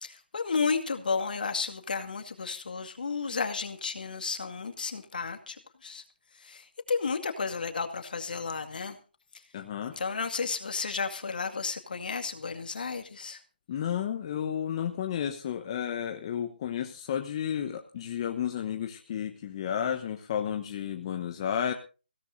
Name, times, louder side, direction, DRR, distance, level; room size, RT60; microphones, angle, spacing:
voice 1, 0.0-6.0 6.3-9.0 10.0-13.4, left 5 dB, 60° left, 6 dB, 2.1 m, -32 dB
voice 2, 9.5-9.9 13.7-21.7, left 9 dB, 30° left, 5 dB, 1.0 m, -32 dB
21.0 x 16.5 x 2.7 m, 0.34 s
figure-of-eight pair, 155°, 5 cm